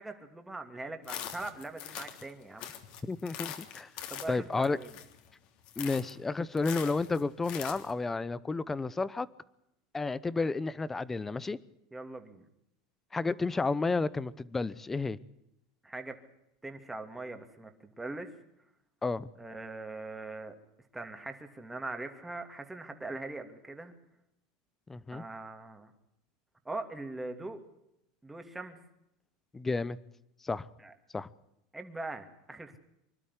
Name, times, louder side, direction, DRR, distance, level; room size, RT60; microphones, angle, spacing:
voice 1, 0.0-2.7 4.1-4.9 11.9-12.4 15.8-16.2 16.6-18.3 19.4-20.6 20.9-23.9 25.1-25.9 26.6-27.6 28.2-28.8 30.8-30.9 31.7-32.8, right 2 dB, 5° right, 6 dB, 2.6 m, -41 dB
sound 1, 1.0-2.3 2.6-5.3 5.6-6.2 6.6-7.9, left 10 dB, 50° left, 3.2 m, -42 dB
voice 2, 3.1-3.9 4.3-4.8 5.8-9.3 9.9-11.6 13.1-15.2 19.0-19.3 24.9-25.2 29.5-30.0 30.4-30.7 31.1-31.3, left 3 dB, 10° left, 19 dB, 0.9 m, -31 dB
25.5 x 12.5 x 9.9 m, 0.82 s
supercardioid pair, 140°, 2 cm